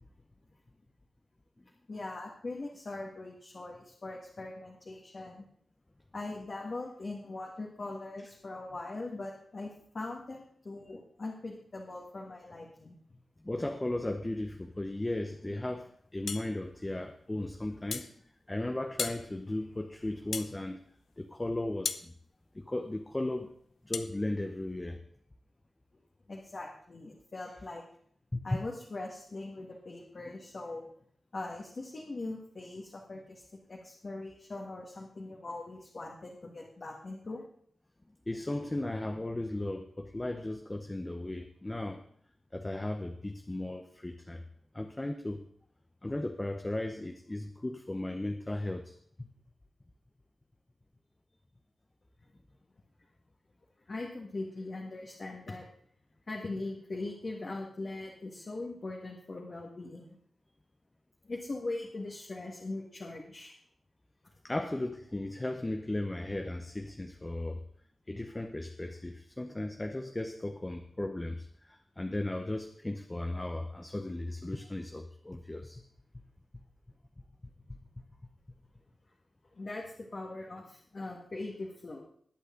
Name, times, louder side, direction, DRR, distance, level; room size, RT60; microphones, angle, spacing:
voice 1, 1.9-5.4 6.1-13.0 26.3-27.8 28.4-30.9 31.3-33.4 33.7-37.4 53.9-55.6 56.3-60.2 61.3-63.5 79.5-82.0, left 2 dB, 40° left, -1 dB, 1.8 m, -41 dB
voice 2, 13.4-18.1 18.5-20.8 21.2-22.1 22.5-23.5 23.8-25.0 28.3-28.6 38.3-42.0 42.5-44.4 44.7-45.5 46.0-49.3 64.4-67.6 68.1-75.8 76.1-76.2 77.7-78.0, left 1 dB, 15° left, 6 dB, 0.8 m, -36 dB
sound 1, 16.3-16.5 17.9-18.1 19.0-19.2 20.3-20.5 21.8-22.1 23.9-24.1, left 6 dB, 80° left, 0.7 m, -35 dB
20.5 x 8.3 x 3.8 m, 0.63 s
wide cardioid pair, 130°, 0 cm